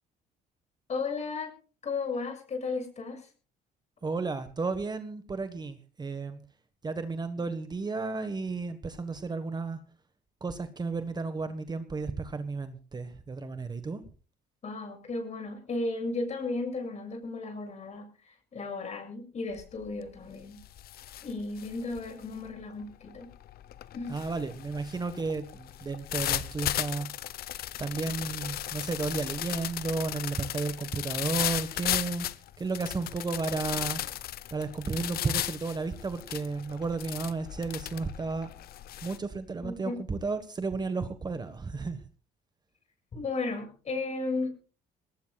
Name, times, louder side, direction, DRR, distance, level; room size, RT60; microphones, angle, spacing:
voice 1, 0.9-1.5 1.8-3.3 14.6-20.6 21.2-23.3 23.9-24.2 39.6-40.0 43.1-44.5, left 3 dB, 40° left, 6 dB, 7.0 m, -34 dB
voice 2, 4.0-6.4 6.8-9.8 10.4-14.0 24.1-27.1 27.8-32.3 32.6-34.0 34.5-38.5 39.0-42.0, right 4 dB, 25° right, 10 dB, 1.4 m, -33 dB
sound 1, 19.5-19.9 20.2-39.2, left 13 dB, 65° left, 0.9 m, -36 dB
22.5 x 19.0 x 2.4 m, 0.37 s
cardioid pair, 110°, 17 cm